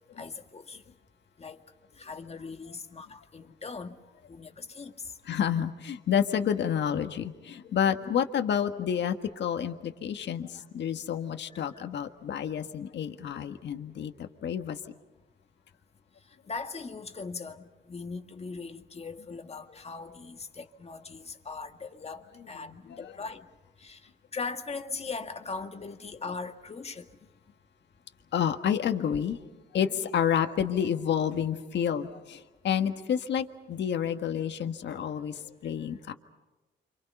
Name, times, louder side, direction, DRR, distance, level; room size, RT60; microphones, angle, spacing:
voice 1, 0.2-0.8 1.4-1.6 2.0-4.0 4.3-4.9 11.5-11.9 16.5-22.2 22.5-23.4 23.8-24.0 24.3-27.1, left 4 dB, 30° left, 1.9 m, -39 dB
voice 2, 5.3-14.1 14.4-14.8 22.9-23.1 28.3-29.4 29.7-35.4 35.6-36.1, left 8 dB, 60° left, 1.6 m, -29 dB
29.5 x 26.5 x 5.6 m
cardioid pair, 90°, 20 cm